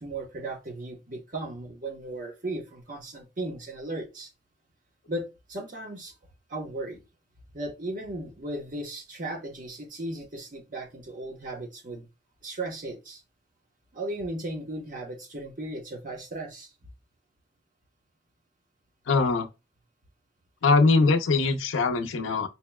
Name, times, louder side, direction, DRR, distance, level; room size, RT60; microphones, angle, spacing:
voice 1, 0.0-4.3 5.1-6.1 6.5-7.0 7.5-12.1 12.4-13.2 13.9-16.7, right 2 dB, 45° right, 1.0 m, -36 dB
voice 2, 19.1-19.5 20.6-22.5, left 3 dB, 80° left, 0.6 m, -22 dB
4.4 x 2.9 x 2.2 m
head